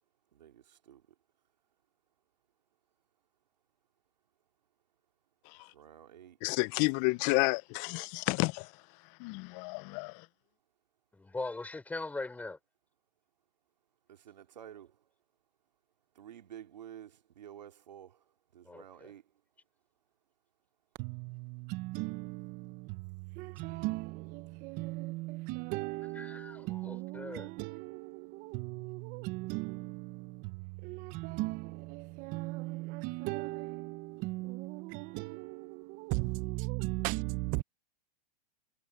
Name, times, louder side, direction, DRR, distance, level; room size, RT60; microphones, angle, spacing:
voice 1, 0.3-1.0 5.7-6.4 14.1-15.0 16.1-18.2 18.5-19.2, right 10 dB, 90° right, 2.8 m, -51 dB
voice 2, 6.4-8.7 9.2-10.3, left 28 dB, 40° left, 0.5 m, -31 dB
voice 3, 11.1-12.6 18.6-19.1 26.2-27.5, left 3 dB, 5° left, 4.0 m, -40 dB
voice 4, 21.0-37.6, right 22 dB, 40° right, 0.9 m, -38 dB
hypercardioid pair, 135°, 21 cm